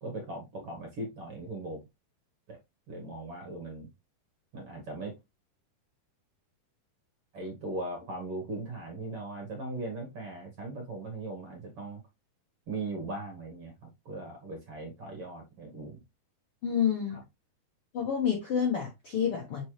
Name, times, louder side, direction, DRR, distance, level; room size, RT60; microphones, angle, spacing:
voice 1, 0.0-1.8 2.5-2.6 2.9-3.9 4.5-5.1 7.3-12.0 12.7-16.0 17.1-17.2, right 2 dB, 60° right, 1.5 m, -39 dB
voice 2, 16.6-17.2 17.9-19.6, left 8 dB, 80° left, 1.3 m, -28 dB
6.1 x 5.4 x 3.2 m
omnidirectional pair, 4.7 m